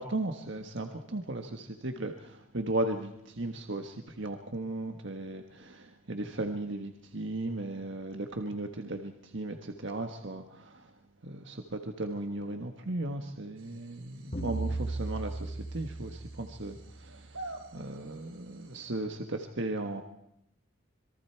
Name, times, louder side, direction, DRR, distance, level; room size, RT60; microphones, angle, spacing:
voice 1, 0.0-10.8 11.2-17.2 17.7-20.0, right 2 dB, 55° right, 5 dB, 1.5 m, -36 dB
sound 1, 13.6-18.9, right 2 dB, 90° right, 3.8 m, -50 dB
sound 2, 14.3-17.1, right 2 dB, 40° left, 3.0 m, -36 dB
26.5 x 22.5 x 4.6 m, 0.80 s
head